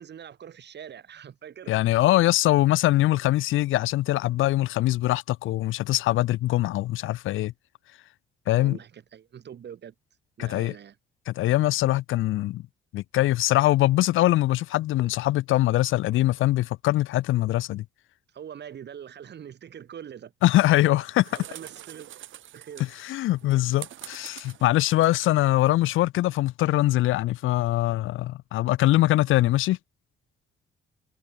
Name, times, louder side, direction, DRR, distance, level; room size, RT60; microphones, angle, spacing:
voice 1, 0.0-1.7 8.5-9.9 10.4-11.0 18.3-20.3 21.3-22.1 22.5-22.8 23.4-23.6, right 9 dB, 60° right, 7.6 m, -43 dB
voice 2, 1.7-7.5 8.5-8.8 10.4-10.7 11.3-12.6 12.9-17.8 20.4-21.3 23.0-29.8, left 16 dB, 85° left, 0.9 m, -23 dB
sound 1, 20.7-25.7, right 12 dB, 75° right, 4.8 m, -46 dB
cardioid pair, 90°, 20 cm